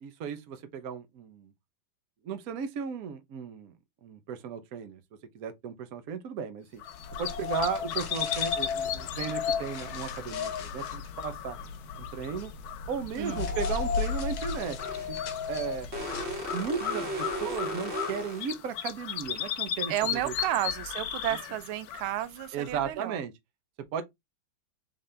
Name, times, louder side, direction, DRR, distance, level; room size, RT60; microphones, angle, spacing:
voice 1, 0.0-1.5 2.2-3.7 4.0-5.0 5.3-6.8 7.2-11.6 12.0-12.5 12.9-14.8 15.1-15.2 15.5-15.9 16.5-20.3 22.5-23.3 23.9-24.0, right 7 dB, 60° right, 1.0 m, -35 dB
sound 1, 6.8-22.9, left 10 dB, 80° left, 0.8 m, -37 dB
sound 2, 6.9-16.9, left 5 dB, 60° left, 1.4 m, -35 dB
sound 3, 14.8-15.1 15.9-18.5, equal, 35° right, 1.8 m, -35 dB
voice 2, 19.9-23.2, right 13 dB, 85° right, 1.4 m, -32 dB
4.1 x 3.7 x 3.2 m
omnidirectional pair, 2.3 m